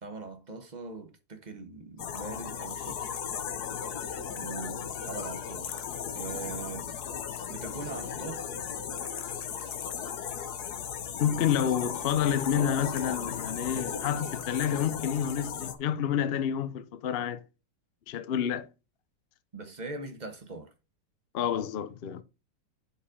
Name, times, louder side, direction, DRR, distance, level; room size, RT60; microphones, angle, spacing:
voice 1, 0.0-3.0 4.3-5.8 6.1-7.0 7.5-8.4 19.5-20.7, right 3 dB, 30° right, 1.1 m, -41 dB
sound 1, 2.0-15.7, left 7 dB, 65° left, 1.4 m, -36 dB
voice 2, 11.2-17.4 18.1-18.7 21.3-22.2, left 9 dB, 80° left, 0.5 m, -29 dB
7.2 x 5.3 x 5.0 m
omnidirectional pair, 1.9 m